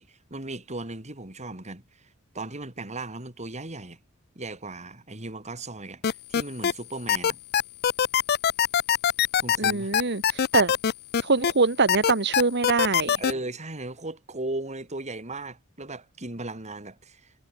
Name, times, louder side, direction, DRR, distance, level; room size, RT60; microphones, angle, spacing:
voice 1, 0.0-1.8 2.3-4.0 4.4-7.4 9.4-9.9 13.2-17.3, right 2 dB, 35° right, 3.9 m, -37 dB
sound 1, 6.0-6.7 7.1-11.5 11.9-13.3, left 8 dB, 50° left, 0.5 m, -22 dB
voice 2, 9.6-10.7 11.2-13.2, right 4 dB, 55° right, 1.6 m, -24 dB
head